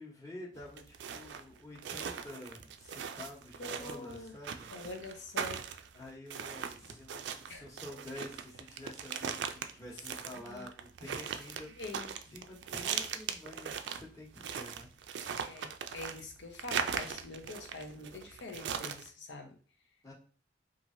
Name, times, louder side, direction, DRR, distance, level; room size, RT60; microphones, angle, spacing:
voice 1, 0.0-4.7 5.9-11.7 12.3-14.9 20.0-20.1, left 1 dB, 20° left, -4 dB, 0.9 m, -49 dB
sound 1, 0.6-19.1, right 7 dB, 75° right, 0.3 m, -39 dB
voice 2, 3.6-4.3 4.7-5.7 7.5-7.6 10.5-10.7 11.8-12.4 15.2-19.6, left 2 dB, 85° left, 4 dB, 0.7 m, -45 dB
2.9 x 2.5 x 2.6 m, 0.41 s
head